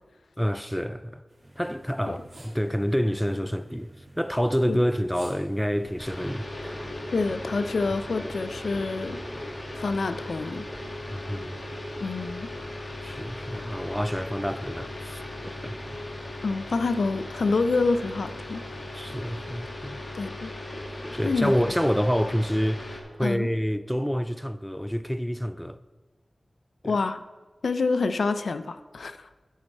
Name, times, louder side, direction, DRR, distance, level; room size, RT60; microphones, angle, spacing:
voice 1, 0.4-1.2 1.6-6.5 11.1-11.6 13.0-15.7 18.9-20.0 21.1-25.8 26.8-26.9, equal, 5° left, 0.3 m, -28 dB
sound 1, 1.3-6.3, right 1 dB, 45° right, 2.1 m, -53 dB
sound 2, 1.4-19.3, right 1 dB, 15° right, 1.2 m, -51 dB
sound 3, 6.0-23.0, left 1 dB, 40° left, 1.5 m, -37 dB
voice 2, 7.1-9.2 9.8-10.7 12.0-12.5 16.4-18.6 20.1-20.5 21.2-21.5 23.2-23.5 26.8-27.2 27.6-29.3, left 3 dB, 80° left, 0.4 m, -27 dB
9.9 x 6.6 x 4.2 m
wide cardioid pair, 95°, 0 cm